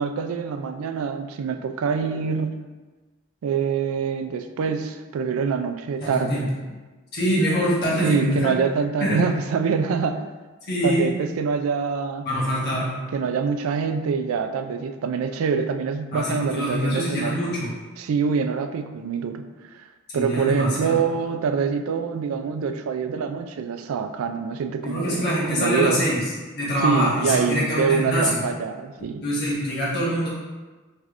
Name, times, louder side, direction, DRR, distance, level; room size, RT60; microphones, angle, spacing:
voice 1, 0.0-2.6 3.4-6.5 8.0-10.3 10.8-12.3 13.1-17.4 18.0-19.5 20.1-26.1 26.8-29.2, right 6 dB, 90° right, 8 dB, 0.3 m, -25 dB
voice 2, 6.0-6.4 7.1-8.5 9.0-9.2 10.7-11.1 12.2-12.9 16.1-17.7 20.1-20.9 24.8-26.2 26.5-28.4 29.2-30.3, equal, 55° left, -6 dB, 1.3 m, -24 dB
4.9 x 3.2 x 2.4 m, 1.3 s
head